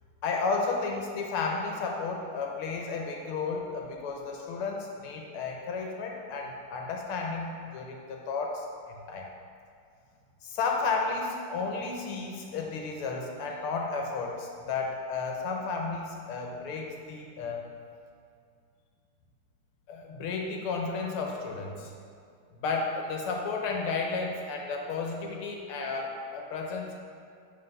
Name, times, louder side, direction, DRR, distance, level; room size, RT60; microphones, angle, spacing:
voice 1, 0.2-9.3 10.4-17.7 19.9-21.9 22.5-27.0, left 4 dB, 85° left, 1 dB, 1.7 m, -33 dB
7.8 x 3.8 x 5.4 m, 2.3 s
omnidirectional pair, 2.4 m